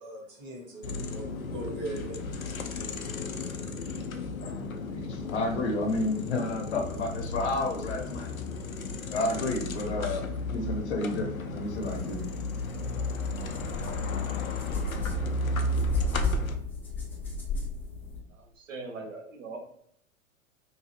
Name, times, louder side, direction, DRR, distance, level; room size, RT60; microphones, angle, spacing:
voice 1, 0.0-2.2, right 2 dB, 25° right, -3 dB, 1.4 m, -40 dB
sound 1, 0.8-16.6, left 2 dB, 85° left, 0.5 m, -34 dB
voice 2, 4.9-8.3 9.1-12.4, left 2 dB, 55° left, 3 dB, 0.8 m, -31 dB
sound 2, 12.6-12.7 13.1-18.2, left 3 dB, 5° left, 0.4 m, -33 dB
voice 3, 18.3-19.6, right 3 dB, 70° right, 2 dB, 0.7 m, -41 dB
2.8 x 2.6 x 3.1 m, 0.71 s
figure-of-eight pair, 95°, 41 cm